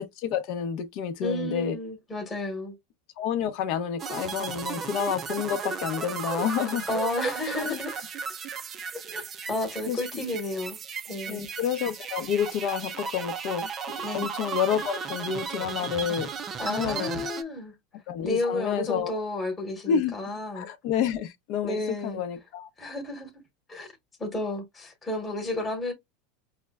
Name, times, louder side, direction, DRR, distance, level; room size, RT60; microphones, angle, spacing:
voice 1, 0.0-1.8 3.2-6.9 7.5-7.8 9.9-10.0 11.3-13.7 14.1-16.3 16.7-17.2 18.1-19.2 19.9-20.1 20.5-22.7, left 8 dB, 50° left, 0.7 m, -29 dB
voice 2, 1.2-2.7 6.9-8.0 9.1-9.2 9.5-10.8 11.1-11.5 14.0-14.3 16.6-17.7 18.2-20.7 21.6-22.2 22.8-23.3 23.7-23.9 24.2-25.9, left 2 dB, 15° left, 1.1 m, -32 dB
sound 1, 4.0-17.4, right 6 dB, 25° right, 0.4 m, -35 dB
5.5 x 2.1 x 2.3 m
supercardioid pair, 150°, 0 cm